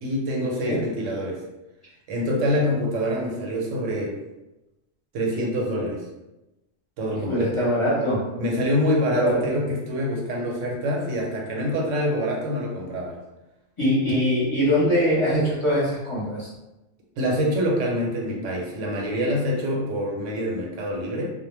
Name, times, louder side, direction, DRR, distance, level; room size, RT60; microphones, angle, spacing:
voice 1, 0.0-1.4 2.1-4.1 5.1-6.0 7.0-7.5 8.4-13.2 17.2-21.3, equal, 80° right, -1 dB, 1.0 m, -25 dB
voice 2, 7.3-8.2 9.1-9.4 13.8-16.5, equal, 30° left, -9 dB, 0.9 m, -22 dB
2.2 x 2.1 x 3.1 m, 1.0 s
omnidirectional pair, 1.3 m